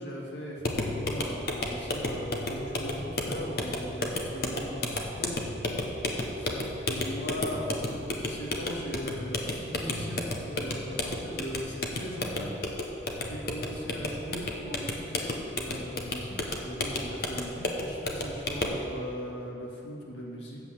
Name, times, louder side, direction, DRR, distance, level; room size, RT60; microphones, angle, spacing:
voice 1, 0.0-5.4 6.3-12.6 13.2-20.6, equal, 75° left, -3 dB, 1.9 m, -39 dB
sound 1, 0.6-18.8, left 2 dB, 55° left, 1.0 m, -33 dB
8.0 x 7.7 x 7.1 m, 2.8 s
head